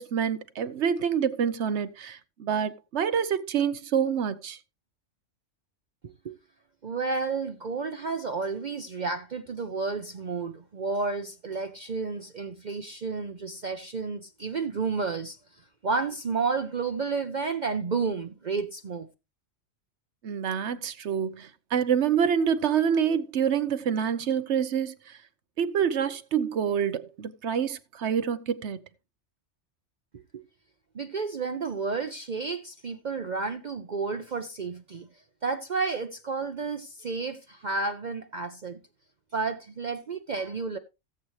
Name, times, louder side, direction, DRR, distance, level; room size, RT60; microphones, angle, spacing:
voice 1, 0.0-4.6 20.2-25.2 25.6-28.8, right 8 dB, 70° right, 1.1 m, -27 dB
voice 2, 6.0-6.4 6.8-15.4 15.8-19.1 30.3-30.4 30.9-35.1 35.4-38.8 39.3-40.8, right 4 dB, 45° right, 0.8 m, -31 dB
16.5 x 7.8 x 3.2 m
omnidirectional pair, 1.2 m